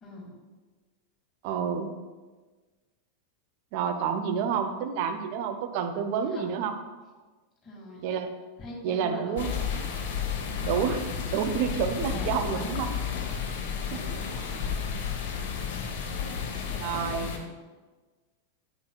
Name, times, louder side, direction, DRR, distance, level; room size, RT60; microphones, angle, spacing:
voice 1, 0.0-0.3 4.6-4.7 6.3-6.6 7.6-8.1 8.6-9.8 11.3-11.5 12.1-12.9 13.6-14.6 16.2-16.3 17.1-17.5, left 2 dB, 25° left, -2 dB, 2.3 m, -43 dB
voice 2, 1.4-1.9 3.7-6.7 8.0-8.3 8.8-9.5 10.6-11.0 11.3-12.9 13.9-14.0 16.7-17.3, right 7 dB, 45° right, 7 dB, 0.7 m, -29 dB
sound 1, 9.4-17.4, left 7 dB, 50° left, 1.0 m, -32 dB
8.5 x 7.7 x 2.3 m, 1.3 s
figure-of-eight pair, 90°, 0 cm